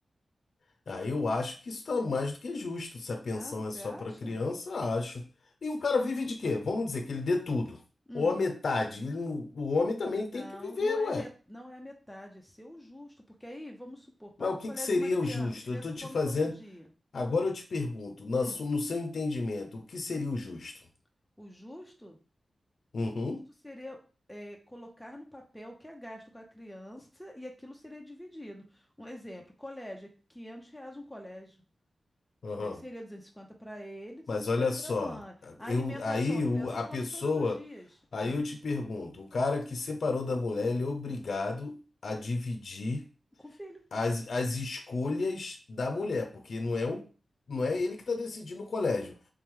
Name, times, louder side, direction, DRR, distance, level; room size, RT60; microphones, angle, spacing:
voice 1, 0.9-5.3 5.6-7.8 8.1-11.3 14.4-16.6 17.1-20.7 22.9-23.4 32.4-32.8 34.3-35.2 35.7-37.6 38.1-43.1 43.9-47.0 47.5-49.1, left 3 dB, 65° left, 6 dB, 0.5 m, -31 dB
voice 2, 3.3-4.4 8.1-8.4 10.3-13.1 13.4-16.9 18.3-18.6 21.4-22.2 23.6-24.0 24.3-31.6 32.6-35.3 35.6-37.9 38.1-38.4 43.4-43.8 46.0-46.1, left 1 dB, ahead, 1 dB, 0.7 m, -45 dB
3.3 x 3.1 x 3.6 m, 0.37 s
wide cardioid pair, 125°, 0 cm